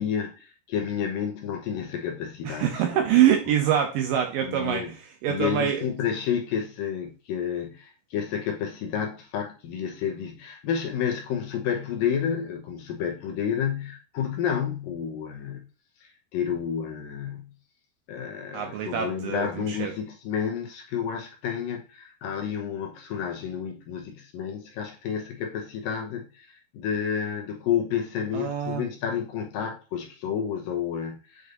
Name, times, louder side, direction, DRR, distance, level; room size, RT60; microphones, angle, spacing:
voice 1, 0.0-3.0 4.4-4.9 5.3-15.6 16.0-17.5 18.1-31.5, left 8 dB, 75° left, 2.4 m, -30 dB
voice 2, 2.5-5.8 18.5-19.9 28.3-28.8, right 10 dB, 80° right, 2.1 m, -25 dB
8.0 x 5.0 x 2.6 m
omnidirectional pair, 4.7 m